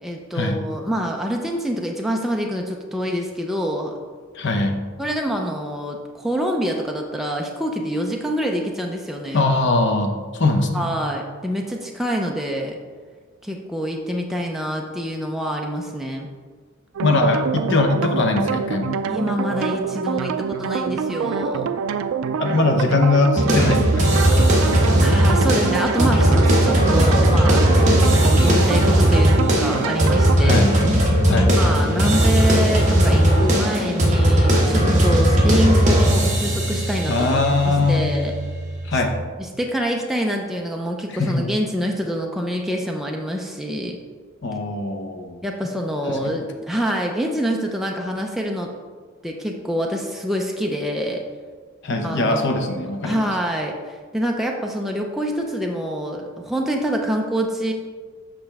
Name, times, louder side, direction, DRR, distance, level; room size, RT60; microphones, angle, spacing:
voice 1, 0.0-3.9 5.0-9.4 10.7-12.8 13.4-16.3 19.1-21.7 25.0-30.7 31.3-37.4 37.6-38.3 39.4-44.0 45.4-48.7 49.2-51.3 52.0-52.6 53.0-57.7, equal, ahead, 0 dB, 0.4 m, -26 dB
voice 2, 4.3-4.9 9.3-10.9 17.0-19.1 22.4-24.5 30.4-30.8 31.3-31.6 37.1-38.1 38.8-39.1 41.1-41.5 44.4-45.4 46.1-46.2 51.8-53.3, left 2 dB, 60° left, 3 dB, 0.8 m, -21 dB
sound 1, 16.9-30.4, right 6 dB, 75° right, 0.3 m, -25 dB
sound 2, 23.4-39.1, equal, 35° right, 1.2 m, -17 dB
7.5 x 5.7 x 3.4 m, 1.5 s
head